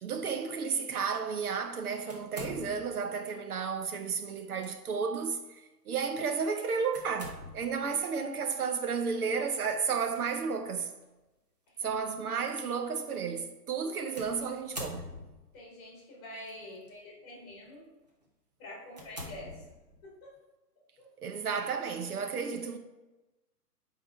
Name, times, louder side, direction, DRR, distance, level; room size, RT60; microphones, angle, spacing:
voice 1, 0.0-5.6 5.9-10.9 11.8-15.1 21.2-22.8, right 5 dB, 65° right, 0.8 m, -32 dB
sound 1, 2.1-3.1 4.4-4.7 5.2-5.3 6.9-7.8 9.9-10.2 11.0-11.1 14.2-15.6 16.5-16.9 17.5-17.7 18.2-18.3 18.9-20.1, equal, 25° right, 0.6 m, -44 dB
voice 2, 15.5-17.8 18.6-19.6 20.0-20.3 21.0-21.1, left 1 dB, 25° left, 2.0 m, -46 dB
8.6 x 3.7 x 4.6 m
hypercardioid pair, 175°, 48 cm